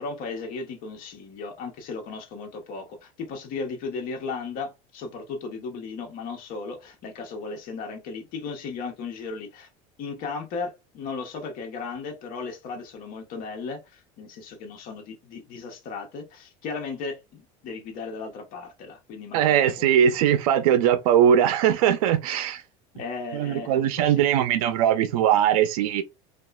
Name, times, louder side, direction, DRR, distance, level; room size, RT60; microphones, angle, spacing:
voice 1, 0.0-9.7 10.0-20.2 22.9-24.3, left 4 dB, 50° left, 0.9 m, -36 dB
voice 2, 19.3-22.6 23.3-26.0, right 9 dB, 90° right, 0.4 m, -20 dB
2.9 x 2.3 x 2.2 m
supercardioid pair, 125°, 19 cm